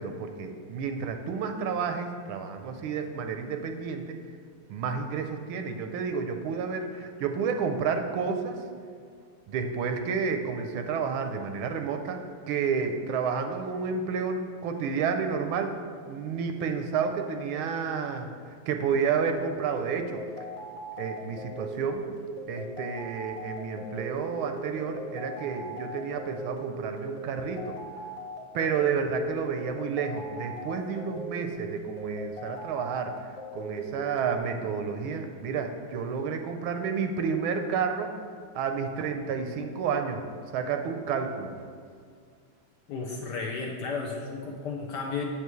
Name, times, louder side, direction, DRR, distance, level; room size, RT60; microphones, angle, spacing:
voice 1, 0.0-4.1 4.7-8.6 9.5-12.2 12.5-15.8 16.1-18.3 18.7-20.2 21.0-22.1 22.5-27.8 28.5-33.1 33.5-38.1 38.5-40.2 40.5-41.5, right 6 dB, 80° right, 6 dB, 1.4 m, -30 dB
sound 1, 19.3-34.4, right 1 dB, 40° left, 2.0 m, -39 dB
voice 2, 42.9-45.2, left 4 dB, 65° left, 0 dB, 1.1 m, -33 dB
8.1 x 7.1 x 3.1 m, 2.2 s
omnidirectional pair, 2.4 m